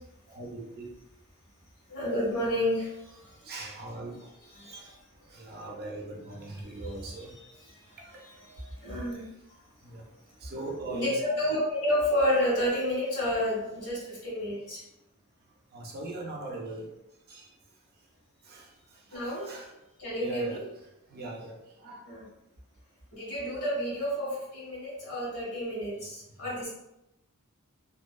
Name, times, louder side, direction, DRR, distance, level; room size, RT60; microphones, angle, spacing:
voice 1, 0.3-0.8 3.4-4.1 4.7-4.8 5.3-7.3 9.8-10.0 10.4-11.2 15.7-16.8 17.3-17.4 18.5-18.7 19.1-19.7 20.2-20.6 21.1-21.6 21.8-22.0, right 2 dB, 45° right, 0 dB, 0.5 m, -40 dB
voice 2, 1.9-3.2 4.5-4.9 8.1-9.3 10.9-14.8 19.1-19.5 20.0-20.6 22.0-22.2 23.1-26.7, left 1 dB, 80° left, -5 dB, 1.5 m, -30 dB
2.6 x 2.2 x 2.2 m, 0.86 s
head